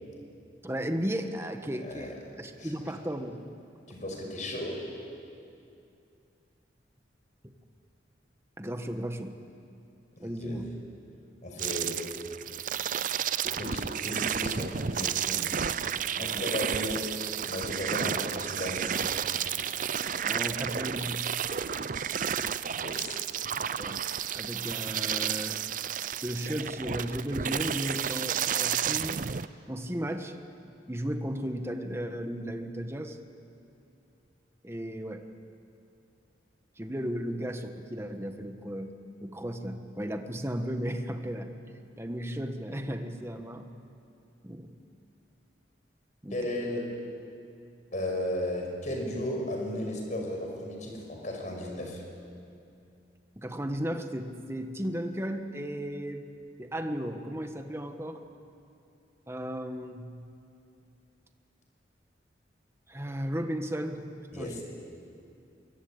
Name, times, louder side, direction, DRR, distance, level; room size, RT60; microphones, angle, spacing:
voice 1, 0.6-3.4 7.4-7.5 8.6-9.3 10.2-10.8 16.2-16.4 20.2-21.3 23.7-24.0 24.3-25.6 26.1-29.2 29.7-30.3 30.9-33.2 34.6-35.2 36.8-38.9 39.2-41.5 42.0-43.6 44.4-44.7 46.2-46.5 53.4-56.2 56.6-58.2 59.3-60.1 62.9-64.0 64.3-64.6, equal, 15° right, 6 dB, 1.5 m, -35 dB
voice 2, 1.8-2.1 2.6-2.7 3.9-4.8 10.4-10.6 11.4-11.9 13.6-15.4 16.2-17.0 17.4-19.2 22.8-23.2 46.3-46.9 47.9-52.0 64.3-64.6, left 1 dB, 45° left, 2 dB, 5.6 m, -35 dB
sound 1, 11.6-29.5, right 8 dB, 45° right, 0.6 m, -31 dB
25.5 x 22.5 x 8.8 m, 2.6 s
head